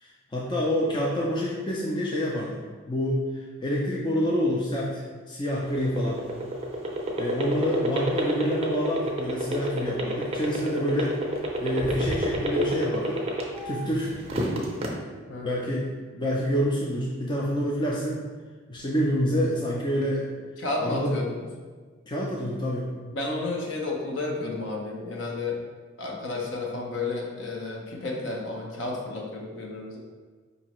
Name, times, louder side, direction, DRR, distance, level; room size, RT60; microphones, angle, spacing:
voice 1, 0.0-2.6 2.9-5.0 5.3-6.2 7.2-11.1 11.6-13.2 13.6-14.1 15.4-15.9 16.1-18.2 18.7-20.2 20.8-21.2 22.1-22.9, equal, 20° left, -3 dB, 0.4 m, -27 dB
sound 1, 5.5-13.7 14.1-14.9, right 1 dB, 30° right, 0.5 m, -27 dB
voice 2, 15.3-15.6 20.6-21.5 23.1-25.6 26.0-30.0, left 3 dB, 60° left, -1 dB, 0.7 m, -32 dB
4.8 x 2.7 x 3.0 m, 1.5 s
head